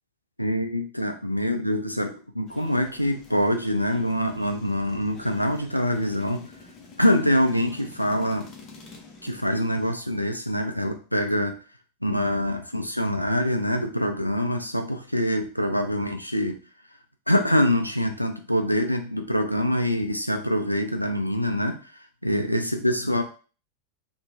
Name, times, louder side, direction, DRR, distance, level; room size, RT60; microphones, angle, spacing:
voice 1, 0.4-6.5 7.0-8.5 9.2-11.6 12.0-16.6 17.3-23.2, equal, 90° left, 6 dB, 0.3 m, -25 dB
sound 1, 2.5-9.9, left 3 dB, 30° left, 0.5 m, -48 dB
2.8 x 2.1 x 2.4 m, 0.36 s
figure-of-eight pair, 90°, 0 cm